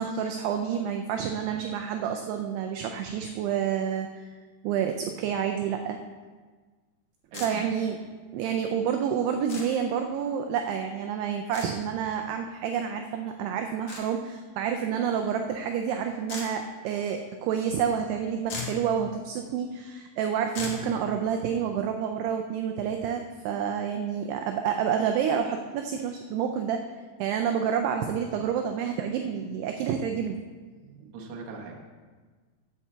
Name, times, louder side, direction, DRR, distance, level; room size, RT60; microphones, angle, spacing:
voice 1, 0.0-4.2 4.6-6.0 7.4-8.0 8.3-26.8 27.2-30.4, right 8 dB, 85° right, 5 dB, 2.4 m, -29 dB
sound 1, 7.3-7.5 9.5-9.7 11.5-11.7 13.9-14.0 16.3-16.5 18.1-18.2 18.4-18.8 20.5-20.8, left 4 dB, 60° left, 1.7 m, -36 dB
voice 2, 7.3-7.7 31.1-31.7, right 4 dB, 70° right, -1 dB, 1.8 m, -40 dB
8.6 x 5.6 x 7.3 m, 1.4 s
omnidirectional pair, 5.2 m